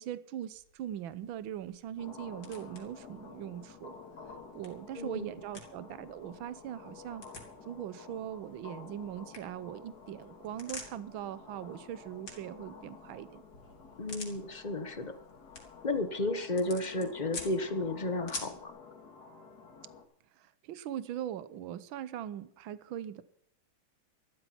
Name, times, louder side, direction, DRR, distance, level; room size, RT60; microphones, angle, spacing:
voice 1, 0.0-3.9 4.2-7.2 7.6-13.4 20.4-23.2, right 11 dB, 75° right, 1.6 m, -41 dB
sound 1, 0.5-18.7, left 3 dB, 70° left, 4.0 m, -51 dB
sound 2, 2.0-20.0, left 5 dB, 50° left, 2.3 m, -51 dB
voice 2, 4.9-5.3 14.0-15.2 15.8-18.7, left 2 dB, 30° left, 0.9 m, -33 dB
13.5 x 12.5 x 5.9 m
omnidirectional pair, 2.3 m